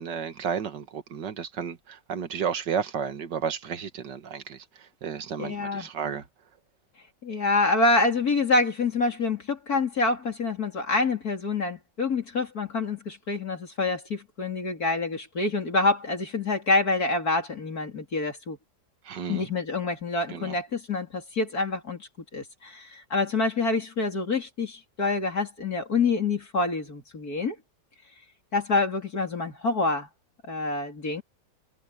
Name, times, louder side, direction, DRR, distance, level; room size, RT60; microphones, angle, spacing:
voice 1, 0.0-6.2 19.0-19.5 20.3-20.6, right 7 dB, 85° right, 2.0 m, -32 dB
voice 2, 5.4-5.9 7.2-18.6 19.3-27.6 28.5-30.1 30.5-31.2, left 3 dB, 60° left, 3.7 m, -27 dB
omnidirectional pair, 1.8 m